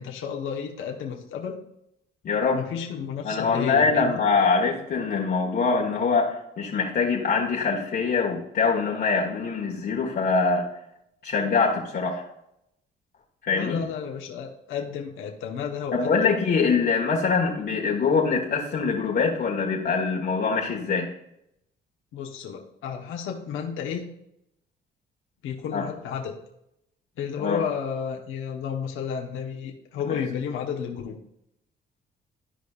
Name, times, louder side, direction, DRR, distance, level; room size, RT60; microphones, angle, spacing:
voice 1, 0.0-1.6 2.5-4.2 13.5-16.4 22.1-24.1 25.4-26.4 27.2-31.2, left 7 dB, 85° left, 1 dB, 1.1 m, -32 dB
voice 2, 2.2-2.6 3.2-10.7 11.2-12.2 13.4-13.8 15.9-21.1 25.7-25.9 27.4-27.6, left 4 dB, 55° left, -2 dB, 1.3 m, -24 dB
13.0 x 5.1 x 2.4 m, 0.79 s
cardioid pair, 90°, 20 cm